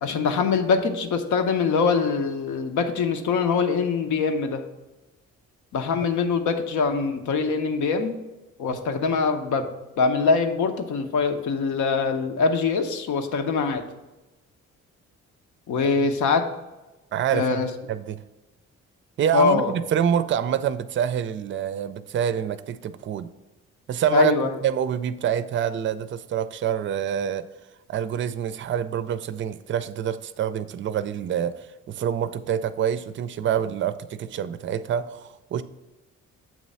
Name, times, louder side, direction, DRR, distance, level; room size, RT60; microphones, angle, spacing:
voice 1, 0.0-4.6 5.7-8.2 8.6-9.7 10.0-13.8 15.7-16.5 17.3-17.7 19.3-19.7 24.1-24.5, left 5 dB, 75° left, 0.8 m, -23 dB
voice 2, 17.1-17.5 17.9-18.2 19.2-23.3 23.9-24.3 24.6-27.5 27.9-35.6, right 9 dB, 40° right, 0.4 m, -26 dB
7.4 x 3.1 x 5.4 m
cardioid pair, 90°, 30 cm